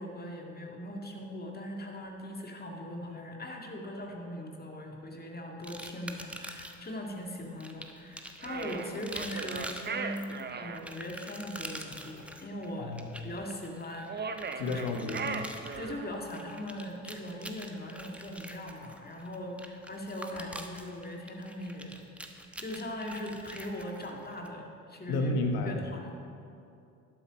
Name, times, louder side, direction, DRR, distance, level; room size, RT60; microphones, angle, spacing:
voice 1, 0.0-13.0 13.2-14.8 15.6-22.1 22.6-25.3 25.7-26.2, left 1 dB, 25° left, 1 dB, 2.0 m, -40 dB
sound 1, 5.6-6.9 7.6-24.5, right 1 dB, 5° right, 1.0 m, -45 dB
sound 2, 8.4-10.8 14.0-16.2, right 5 dB, 25° right, 0.7 m, -38 dB
voice 2, 12.8-13.1 14.6-15.4 25.1-25.8, left 2 dB, 65° left, 4 dB, 1.3 m, -31 dB
11.5 x 8.0 x 5.1 m, 2.6 s
hypercardioid pair, 55°, 39 cm